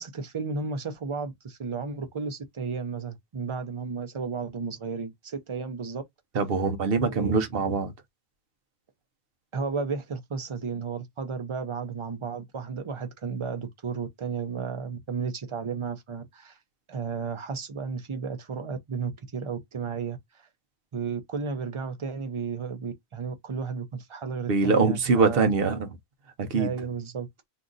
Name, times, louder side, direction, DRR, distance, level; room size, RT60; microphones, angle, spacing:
voice 1, 0.0-6.0 7.0-7.4 9.5-16.6 16.9-20.5 20.9-25.5 26.5-27.3, right 5 dB, 35° right, 0.5 m, -33 dB
voice 2, 6.3-7.9 24.5-25.9 26.4-26.7, right 4 dB, 60° right, 0.9 m, -23 dB
2.7 x 2.4 x 3.8 m
omnidirectional pair, 1.2 m